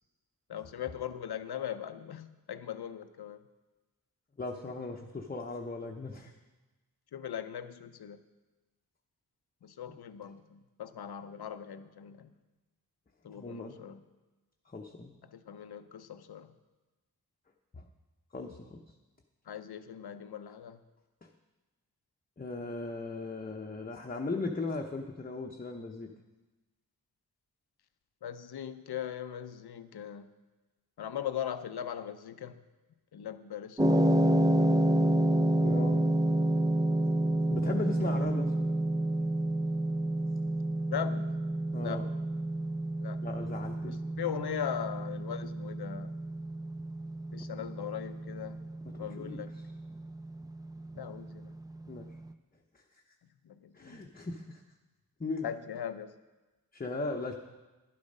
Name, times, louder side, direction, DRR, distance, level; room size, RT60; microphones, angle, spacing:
voice 1, 0.5-3.4 7.1-8.2 9.6-12.3 13.2-14.0 15.2-16.5 19.5-20.8 28.2-30.3 31.0-32.6 33.1-34.4 40.9-41.4 41.8-42.0 43.0-43.2 43.9-46.1 47.3-48.6 49.0-49.5 50.9-51.5 53.4-54.0 55.4-56.1, left 9 dB, 90° left, 11 dB, 0.6 m, -39 dB
voice 2, 4.4-6.3 13.3-13.7 14.7-15.1 17.7-17.9 18.3-18.8 21.2-21.3 22.4-26.1 35.6-36.0 37.5-38.5 41.7-42.0 43.2-44.1 49.0-49.6 51.9-52.1 53.7-54.6 55.2-55.5 56.7-57.3, left 3 dB, 25° left, 1 dB, 0.8 m, -37 dB
sound 1, 33.8-52.0, right 1 dB, 10° right, 0.5 m, -29 dB
11.0 x 8.5 x 5.4 m, 1.2 s
wide cardioid pair, 65°, 37 cm